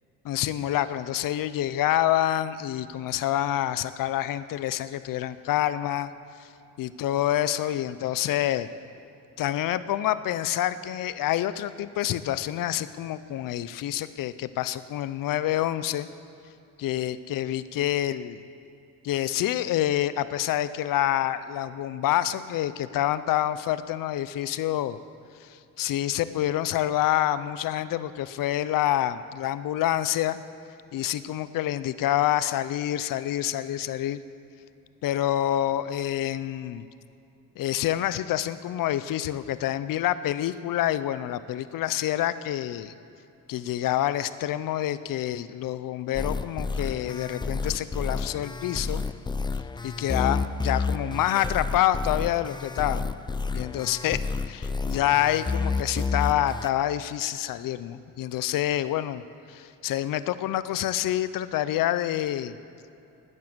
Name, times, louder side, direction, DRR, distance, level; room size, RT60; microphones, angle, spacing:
voice 1, 0.2-6.1 6.8-8.7 9.4-16.1 16.8-18.4 19.0-25.0 25.4-25.5 25.8-30.4 30.9-34.2 35.0-36.9 37.6-42.9 43.5-49.0 49.8-53.0 53.5-59.2 59.5-62.5, left 12 dB, 75° left, 14 dB, 0.6 m, -27 dB
sound 1, 46.1-56.7, left 4 dB, 15° left, 0.4 m, -30 dB
13.0 x 9.6 x 7.8 m, 2.7 s
cardioid pair, 90°, 34 cm